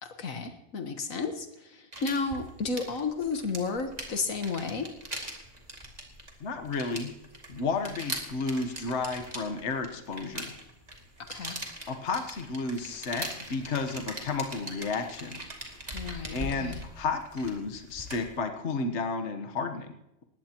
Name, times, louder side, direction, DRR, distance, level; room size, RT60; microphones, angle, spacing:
voice 1, 0.0-4.9 11.2-11.6 15.9-16.8, left 4 dB, 70° left, 6 dB, 1.7 m, -33 dB
sound 1, 1.9-18.4, right 1 dB, 30° right, 2.4 m, -41 dB
voice 2, 6.4-7.1 7.5-10.5 11.9-15.4 16.3-19.9, left 4 dB, 55° left, 6 dB, 1.4 m, -32 dB
20.0 x 16.5 x 3.0 m, 0.87 s
omnidirectional pair, 1.5 m